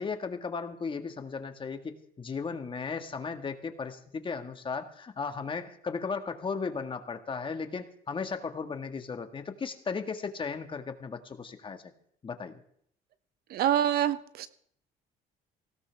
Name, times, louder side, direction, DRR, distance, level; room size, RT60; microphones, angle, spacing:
voice 1, 0.0-11.8 12.2-12.6, left 5 dB, 30° left, 7 dB, 1.7 m, -36 dB
voice 2, 13.5-14.5, right 11 dB, 65° right, 14 dB, 0.9 m, -26 dB
18.5 x 17.0 x 3.5 m, 0.66 s
cardioid pair, 110°, 17 cm